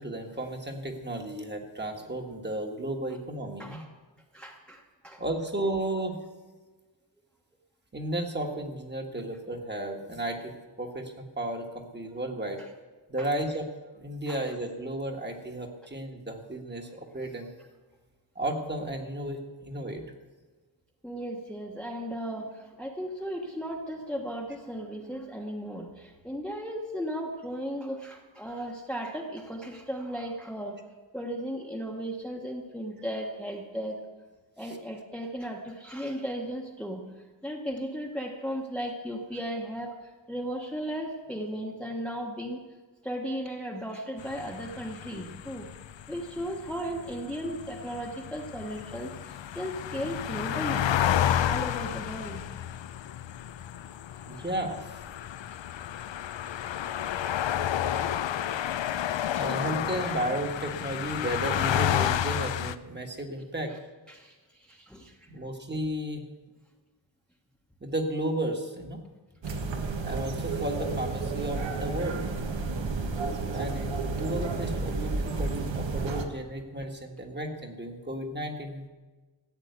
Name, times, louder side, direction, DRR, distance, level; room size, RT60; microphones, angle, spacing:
voice 1, 0.0-3.8 5.2-6.2 7.9-12.6 13.1-13.7 13.9-17.5 18.3-20.0 34.6-34.8 54.2-55.0 59.4-63.7 65.3-66.2 67.8-69.0 70.0-72.3 73.5-78.9, right 1 dB, 25° right, 3 dB, 1.6 m, -33 dB
voice 2, 4.3-5.2 13.2-13.3 14.3-14.4 21.0-30.8 31.1-34.0 34.6-37.0 37.4-40.0 40.3-42.6 43.0-45.7 46.1-50.9 51.4-52.4 54.3-54.4 56.2-56.3 58.0-58.3 59.3-59.5 60.0-60.1 64.1-65.3, equal, ahead, 0 dB, 1.1 m, -36 dB
sound 1, 44.2-62.7, left 10 dB, 75° left, 0.7 m, -31 dB
sound 2, 69.4-76.2, right 3 dB, 75° right, 1.6 m, -31 dB
14.0 x 9.0 x 8.1 m, 1.3 s
wide cardioid pair, 170°, 45 cm